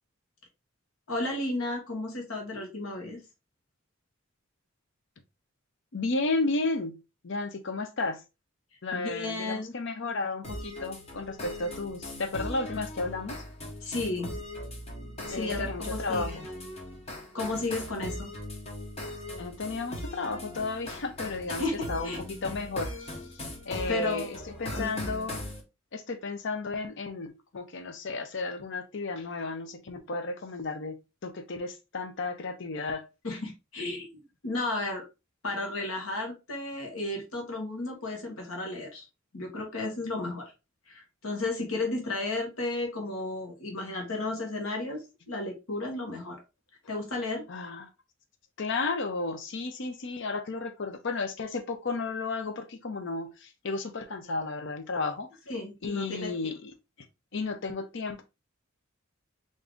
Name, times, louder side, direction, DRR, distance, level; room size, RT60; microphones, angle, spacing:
voice 1, 1.1-3.2 8.9-9.7 13.8-14.4 15.3-16.4 17.3-18.3 21.6-22.2 23.9-24.9 33.2-35.0 35.4-39.1 39.3-40.5 40.9-46.4 46.9-47.5 55.5-56.3, left 2 dB, 85° left, 1.1 m, -33 dB
voice 2, 5.9-7.0 7.2-8.2 8.8-13.4 15.3-16.5 19.4-22.1 22.4-23.1 23.4-25.4 25.9-31.0 31.2-33.0 47.5-47.9 48.6-55.3 55.8-56.7 57.3-58.2, left 3 dB, 60° left, 0.6 m, -33 dB
sound 1, 10.4-25.6, left 1 dB, 30° left, 0.9 m, -39 dB
3.7 x 2.6 x 3.4 m
head